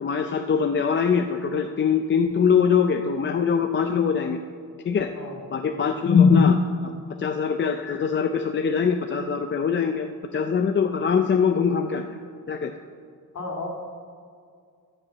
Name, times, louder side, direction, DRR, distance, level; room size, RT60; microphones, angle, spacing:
voice 1, 0.0-4.4 4.8-5.1 5.5-6.9 7.2-10.1 10.3-12.2 12.5-12.7, left 6 dB, 35° left, 6 dB, 0.5 m, -22 dB
voice 2, 13.3-13.7, left 3 dB, 50° left, 0 dB, 2.4 m, -34 dB
14.0 x 5.6 x 7.2 m, 2.2 s
wide cardioid pair, 150°, 34 cm